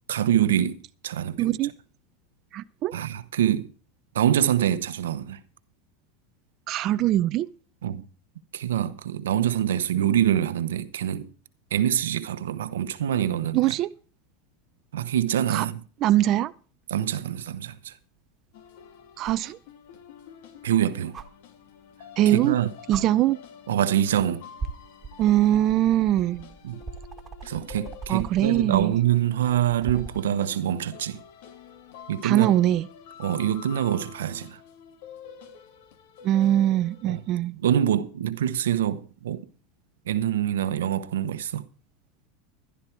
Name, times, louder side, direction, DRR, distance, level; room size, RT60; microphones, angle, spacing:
voice 1, 0.1-1.6 2.9-3.7 4.1-5.4 7.8-8.0 8.5-11.3 11.7-13.7 14.9-15.8 16.9-17.9 20.6-21.2 22.3-22.7 23.7-24.5 26.6-26.8 27.4-31.2 32.1-32.5 33.2-34.6 37.1-37.2 37.6-39.4 40.1-41.6, right 10 dB, 90° right, 1.0 m, -25 dB
voice 2, 1.4-1.7 2.5-2.9 6.7-7.5 13.5-13.9 15.5-15.7 16.0-16.5 19.2-19.6 22.2-22.5 22.9-23.4 25.2-26.5 28.1-28.9 32.2-32.9 36.2-37.6, right 13 dB, 45° right, 0.5 m, -22 dB
sound 1, 18.5-37.3, left 8 dB, 70° left, 2.1 m, -48 dB
sound 2, 19.2-19.5 21.1-21.3 22.4-22.5 22.9-23.0 24.0-24.2 24.6-30.3 31.9-32.0, right 4 dB, 25° right, 1.7 m, -39 dB
12.0 x 11.5 x 4.6 m
supercardioid pair, 120°, 0 cm